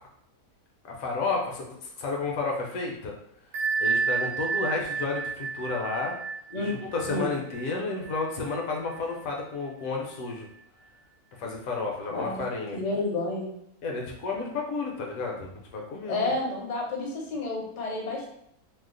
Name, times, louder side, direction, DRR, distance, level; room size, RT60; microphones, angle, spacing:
voice 1, 0.8-3.1 3.8-6.1 6.6-10.5 11.4-12.8 13.8-16.3, left 3 dB, 70° left, 0 dB, 1.0 m, -31 dB
Bell, 3.5-9.0, right 5 dB, 70° right, 1.0 m, -31 dB
voice 2, 12.1-12.4 12.7-13.5 16.0-18.3, left 2 dB, 45° left, -2 dB, 0.6 m, -30 dB
2.8 x 2.0 x 3.7 m, 0.74 s
omnidirectional pair, 1.6 m